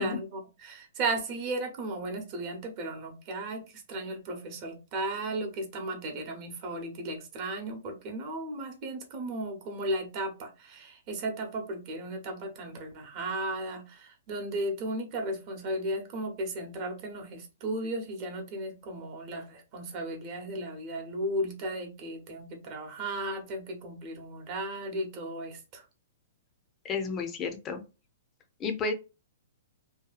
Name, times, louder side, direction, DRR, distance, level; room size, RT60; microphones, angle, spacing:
voice 1, 0.0-25.8, right 1 dB, 40° right, 3 dB, 0.9 m, -35 dB
voice 2, 26.8-27.8 28.6-28.9, left 4 dB, 25° left, 6 dB, 0.6 m, -31 dB
2.8 x 2.2 x 2.4 m, 0.30 s
hypercardioid pair, 140°, 0 cm